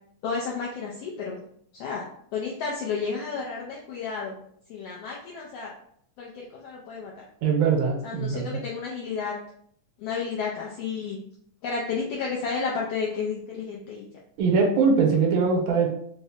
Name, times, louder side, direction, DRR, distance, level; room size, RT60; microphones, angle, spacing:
voice 1, 0.2-1.4 1.7-2.0 2.3-4.4 4.7-5.7 6.2-7.1 8.0-9.4 10.0-11.2 11.6-14.1, left 5 dB, 90° left, -2 dB, 1.4 m, -31 dB
voice 2, 7.4-8.5 14.4-15.9, right 5 dB, 80° right, 0 dB, 1.9 m, -22 dB
4.7 x 2.1 x 2.7 m, 0.66 s
omnidirectional pair, 3.3 m